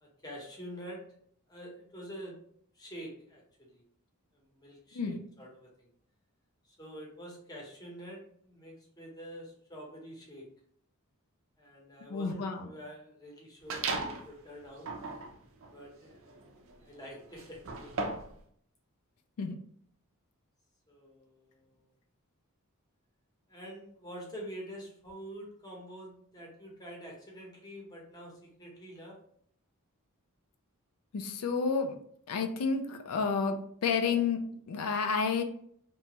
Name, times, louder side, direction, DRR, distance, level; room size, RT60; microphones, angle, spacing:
voice 1, 0.0-1.0 1.5-2.4 2.7-3.8 4.3-5.9 6.7-10.4 11.6-14.9 15.7-16.5 16.8-18.0 20.9-21.8 23.5-28.3 28.6-29.2, equal, 15° left, -2 dB, 0.7 m, -47 dB
voice 2, 12.1-12.7 19.4-19.5 31.1-31.9 32.3-33.6 33.8-35.4, left 5 dB, 85° left, 6 dB, 0.4 m, -30 dB
sound 1, 13.7-14.3 14.8-18.4, right 3 dB, 60° right, 0.4 m, -37 dB
2.9 x 2.2 x 2.8 m, 0.63 s
head